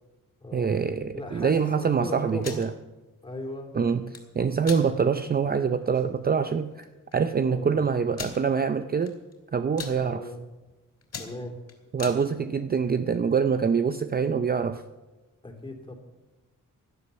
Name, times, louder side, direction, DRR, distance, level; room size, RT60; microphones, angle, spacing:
voice 1, 0.5-2.7 3.7-6.9 7.1-9.2 9.5-10.3 11.9-14.8, right 6 dB, 30° right, 9 dB, 0.5 m, -25 dB
voice 2, 1.1-2.6 3.2-3.7 7.5-7.8 9.9-10.4 11.2-11.6 15.4-15.9, left 2 dB, 15° left, 3 dB, 3.0 m, -38 dB
sound 1, 2.3-2.7 3.9-4.2 4.6-4.9 5.4-5.5 5.8-6.0 6.8-6.9 7.1-7.2 8.1-8.4 9.0-9.3 9.6-10.0 10.5-10.7 11.0-12.2, left 5 dB, 50° left, 3.3 m, -38 dB
17.0 x 11.5 x 6.8 m, 1.1 s
wide cardioid pair, 135°, 32 cm